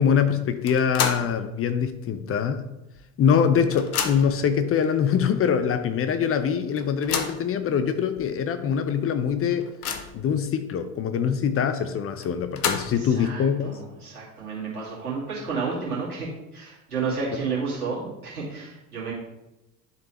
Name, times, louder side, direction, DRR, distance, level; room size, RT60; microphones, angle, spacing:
voice 1, 0.0-2.6 3.2-9.7 10.1-13.7, left 7 dB, 30° left, 10 dB, 0.6 m, -23 dB
sound 1, 0.7-1.4 1.8-1.9 2.9-3.0 3.3-4.4 5.2-5.3 5.7-5.8 6.8-7.5 8.2-8.3 8.7-8.8 9.2-10.3 12.2-13.1, left 6 dB, 80° left, 0.7 m, -30 dB
voice 2, 13.0-19.1, right 4 dB, 90° right, -7 dB, 2.5 m, -31 dB
10.5 x 4.1 x 3.0 m, 0.95 s
figure-of-eight pair, 65°, 43 cm